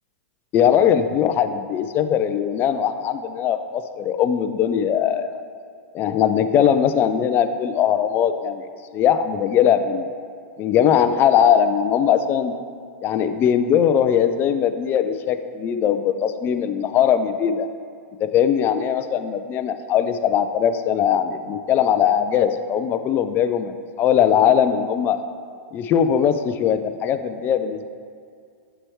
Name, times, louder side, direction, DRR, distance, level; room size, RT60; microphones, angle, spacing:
voice 1, 0.5-5.3 5.9-8.6 8.9-10.1 10.6-12.5 13.0-17.7 18.2-25.2 25.7-27.9, left 9 dB, 25° left, 9 dB, 0.3 m, -20 dB
7.8 x 4.4 x 3.1 m, 2.3 s
hypercardioid pair, 135°, 8 cm